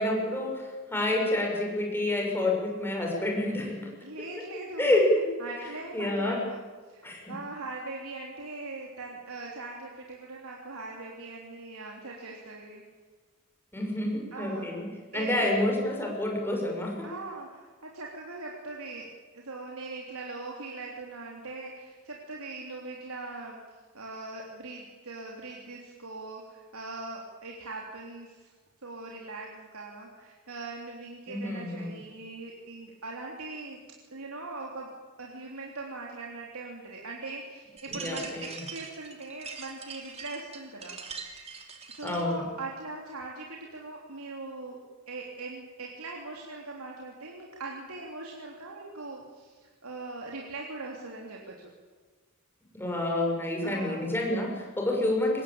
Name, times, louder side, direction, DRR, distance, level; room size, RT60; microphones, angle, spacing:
voice 1, 0.0-3.9 4.8-5.2 5.9-6.4 7.0-7.3 13.7-14.9 15.1-17.1 31.3-31.9 37.9-38.5 42.0-42.5 52.7-55.4, left 1 dB, 10° left, -1 dB, 6.5 m, -28 dB
voice 2, 4.0-5.0 5.4-12.8 14.3-14.7 15.1-15.3 17.0-19.1 19.3-23.6 23.9-28.5 28.8-33.8 34.1-34.9 35.2-41.5 41.9-44.8 45.1-51.7 53.6-54.1, right 3 dB, 80° right, -1 dB, 3.5 m, -41 dB
sound 1, 37.8-42.3, right 5 dB, 30° right, 3.1 m, -42 dB
24.5 x 20.5 x 8.9 m, 1.4 s
head